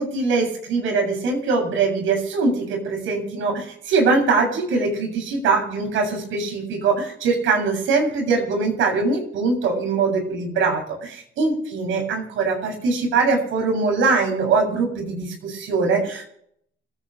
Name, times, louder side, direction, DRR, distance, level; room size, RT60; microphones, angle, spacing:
voice 1, 0.0-16.3, right 4 dB, 80° right, 1 dB, 7.7 m, -22 dB
29.5 x 10.0 x 3.3 m, 0.69 s
cardioid pair, 90°, 20 cm